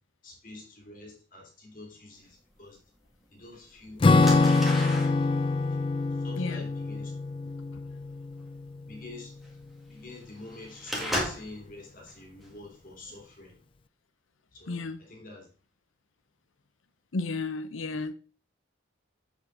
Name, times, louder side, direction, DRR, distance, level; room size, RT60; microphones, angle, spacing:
voice 1, 0.2-2.8 3.3-5.0 5.8-7.1 8.9-9.4 9.9-13.6 14.5-15.5, left 2 dB, 45° left, 2.6 m, -46 dB
sound 1, 2.7-2.8 3.5-3.7 4.2-11.6 12.1-12.5 12.9-13.1, equal, ahead, 2.0 m, -36 dB
Acoustic guitar / Strum, 4.0-8.8, left 3 dB, 25° left, 0.3 m, -25 dB
voice 2, 14.7-15.0 17.1-18.1, left 3 dB, 85° left, 0.8 m, -32 dB
7.6 x 7.6 x 3.8 m
head